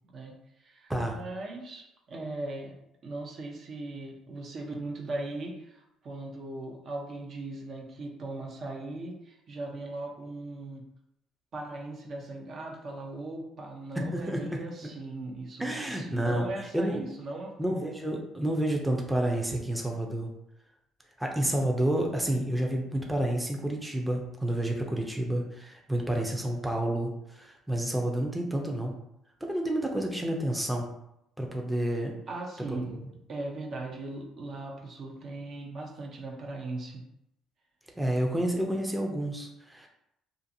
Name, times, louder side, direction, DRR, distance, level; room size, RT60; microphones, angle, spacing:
voice 1, 0.1-2.7 3.0-10.8 11.5-17.9 32.3-33.0 33.3-37.0, right 2 dB, 50° right, 0 dB, 0.6 m, -39 dB
voice 2, 14.0-14.6 15.6-16.5 16.7-17.0 17.6-20.3 21.2-28.9 29.4-30.9 31.4-32.1 32.7-33.0 38.0-39.9, right 1 dB, 5° right, 0 dB, 0.5 m, -29 dB
2.5 x 2.4 x 2.6 m, 0.81 s
supercardioid pair, 75°, 0 cm